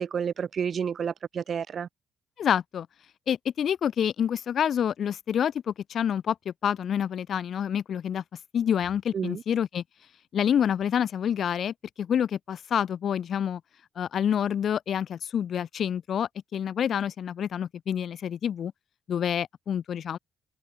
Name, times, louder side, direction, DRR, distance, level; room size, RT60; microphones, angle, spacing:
voice 1, 0.0-1.9 9.1-9.4, right 7 dB, 50° right, 7.4 m, -30 dB
voice 2, 2.4-2.9 3.3-8.2 8.5-9.8 10.3-13.6 14.0-18.7 19.1-20.2, left 9 dB, 60° left, 4.5 m, -27 dB
cardioid pair, 90°, 0 cm